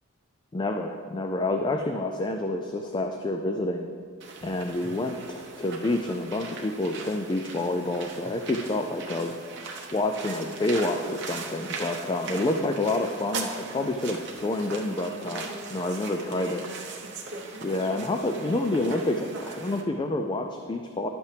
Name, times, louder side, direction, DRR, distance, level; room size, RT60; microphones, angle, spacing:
voice 1, 0.5-3.9 4.4-9.3 9.9-16.6 17.6-21.1, left 2 dB, 20° left, 5 dB, 0.3 m, -28 dB
sound 1, 4.2-19.8, right 4 dB, 55° right, 0.9 m, -39 dB
11.5 x 8.2 x 3.4 m, 2.1 s
head